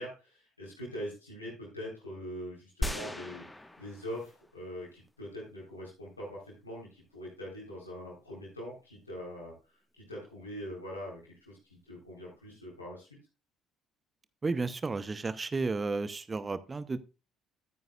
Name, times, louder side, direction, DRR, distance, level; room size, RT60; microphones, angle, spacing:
voice 1, 0.0-13.1, equal, 90° left, -5 dB, 4.1 m, -43 dB
sound 1, 2.8-4.6 5.1-5.2, left 1 dB, 10° left, 1.3 m, -37 dB
voice 2, 14.4-17.0, right 3 dB, 25° right, 15 dB, 0.8 m, -32 dB
14.0 x 9.2 x 2.4 m, 0.30 s
figure-of-eight pair, 55°, 0 cm